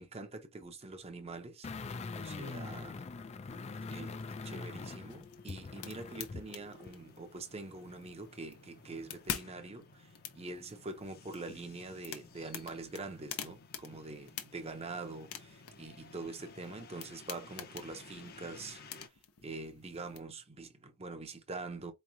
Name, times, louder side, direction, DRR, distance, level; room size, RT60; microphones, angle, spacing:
voice 1, 0.0-1.7 2.2-3.1 3.9-4.2 4.4-10.1 10.3-18.8 19.4-21.9, right 3 dB, 30° right, 0.7 m, -44 dB
sound 1, 1.6-6.5 6.9-7.0, left 4 dB, 30° left, 0.3 m, -43 dB
sound 2, 3.8-19.1, left 4 dB, 45° left, 0.8 m, -57 dB
sound 3, 5.0-20.2, left 8 dB, 85° left, 0.9 m, -48 dB
4.6 x 3.1 x 2.7 m
head